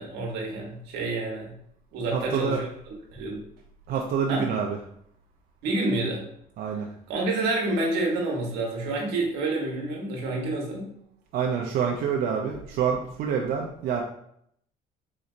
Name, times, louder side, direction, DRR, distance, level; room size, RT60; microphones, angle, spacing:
voice 1, 0.0-1.5 1.9-2.7 3.1-3.4 4.3-4.5 5.6-6.2 7.1-10.9, right 2 dB, 90° right, 0 dB, 1.0 m, -28 dB
voice 2, 2.1-2.6 3.9-4.8 6.6-6.9 11.3-14.0, right 7 dB, 65° right, 1 dB, 0.5 m, -27 dB
3.9 x 3.1 x 2.5 m, 0.70 s
cardioid pair, 110°, 17 cm